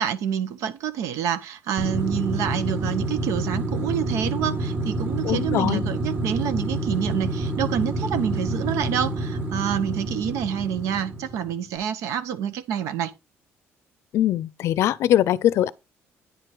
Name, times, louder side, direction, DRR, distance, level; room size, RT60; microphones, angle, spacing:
voice 1, 0.0-13.1, right 9 dB, 85° right, 1.0 m, -27 dB
bus growl, 1.8-11.6, right 1 dB, 40° right, 1.5 m, -28 dB
voice 2, 5.2-5.8 14.1-15.7, left 12 dB, 65° left, 0.5 m, -21 dB
9.7 x 4.5 x 4.9 m
cardioid pair, 155°, 5 cm